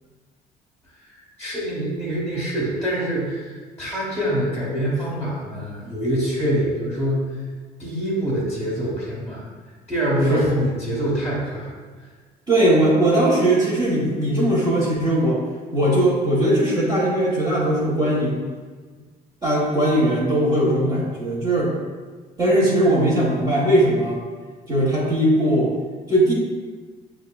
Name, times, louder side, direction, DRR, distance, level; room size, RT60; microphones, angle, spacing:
voice 1, 1.4-3.5 3.8-7.3 7.8-9.4 9.9-11.7, equal, 5° left, -7 dB, 1.1 m, -25 dB
voice 2, 12.5-15.4 15.7-18.4 19.4-21.7 22.4-24.2 24.7-25.7 26.1-26.3, right 1 dB, 25° right, -9 dB, 1.0 m, -19 dB
6.2 x 2.4 x 2.3 m, 1.5 s
cardioid pair, 110°, 17 cm